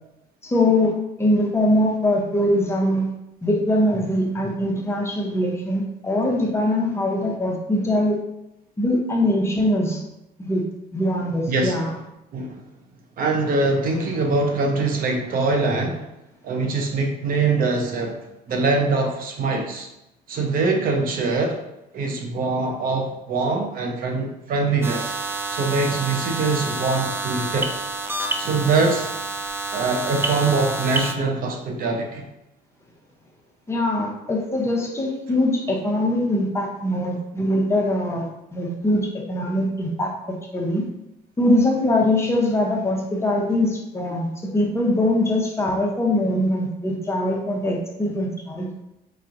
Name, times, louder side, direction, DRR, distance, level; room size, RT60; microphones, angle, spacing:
voice 1, 0.4-3.1 3.4-8.2 8.8-10.0 10.4-10.6 10.9-11.9 33.7-40.8 41.4-48.7, left 1 dB, 15° left, -1 dB, 0.7 m, -22 dB
voice 2, 11.5-11.8 12.3-12.6 13.2-16.1 16.4-18.2 18.5-19.9 20.3-21.6 21.9-25.1 25.5-27.7 28.4-29.1 29.7-32.2, right 3 dB, 55° right, 2 dB, 0.7 m, -23 dB
sound 1, 24.8-31.1, right 2 dB, 15° right, 0.3 m, -28 dB
4.6 x 3.0 x 2.5 m, 0.89 s
cardioid pair, 110°, 17 cm